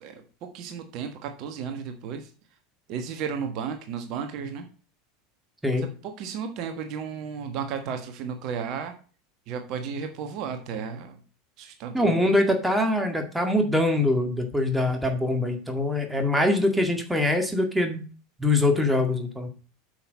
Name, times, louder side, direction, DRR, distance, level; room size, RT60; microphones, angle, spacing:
voice 1, 0.0-2.3 2.9-4.6 5.7-8.9 9.5-11.2 11.6-12.2, right 6 dB, 45° right, 6 dB, 1.4 m, -34 dB
voice 2, 11.9-18.0 18.4-19.5, left 1 dB, 5° right, 5 dB, 2.0 m, -23 dB
8.6 x 6.3 x 5.3 m, 0.38 s
figure-of-eight pair, 80°, 0 cm